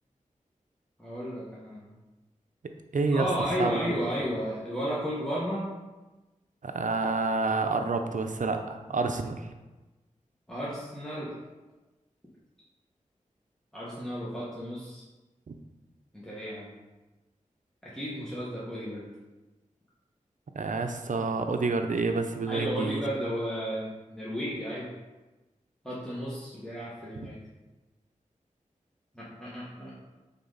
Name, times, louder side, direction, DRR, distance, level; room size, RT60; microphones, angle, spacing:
voice 1, 1.0-1.9 3.1-5.7 10.5-11.4 13.7-15.0 16.1-16.7 17.8-19.1 22.5-24.9 25.8-27.4 29.1-29.9, equal, 5° left, -8 dB, 1.8 m, -33 dB
voice 2, 2.9-3.3 3.6-3.8 6.6-9.4 15.5-15.6 20.5-23.0, right 3 dB, 70° right, 6 dB, 0.7 m, -28 dB
9.1 x 4.0 x 4.1 m, 1.1 s
wide cardioid pair, 55°, 13 cm